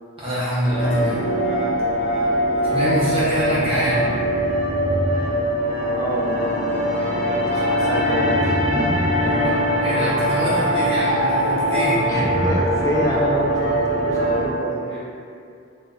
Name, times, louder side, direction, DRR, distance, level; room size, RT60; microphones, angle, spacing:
voice 1, 0.2-1.2 2.6-4.1 9.4-12.0, equal, 30° right, -10 dB, 0.6 m, -24 dB
sound 1, 0.6-14.5, equal, 35° left, 0.8 m, -21 dB
voice 2, 6.0-9.4 12.1-13.7 14.0-15.0, equal, 15° left, -5 dB, 0.4 m, -28 dB
2.3 x 2.1 x 3.6 m, 2.5 s
head